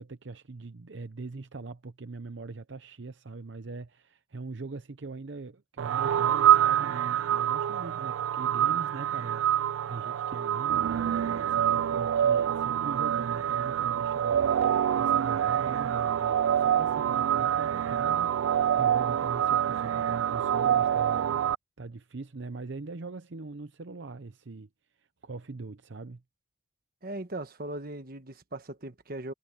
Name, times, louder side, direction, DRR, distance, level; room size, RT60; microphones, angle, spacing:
voice 1, 0.0-21.4 21.8-24.7 25.0-26.2, right 3 dB, 65° right, 0.7 m, -42 dB
sound 1, 5.8-21.5, right 10 dB, 90° right, 0.3 m, -26 dB
voice 2, 27.0-29.3, right 1 dB, 50° right, 1.4 m, -38 dB
head